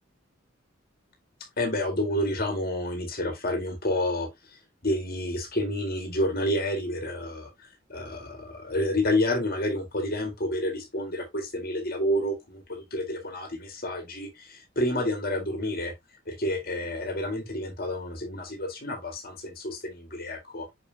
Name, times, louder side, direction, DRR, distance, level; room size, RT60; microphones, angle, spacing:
voice 1, 1.6-7.5 7.9-15.9 16.3-20.7, left 1 dB, 50° left, 1.9 m, -29 dB
6.4 x 5.6 x 2.8 m
head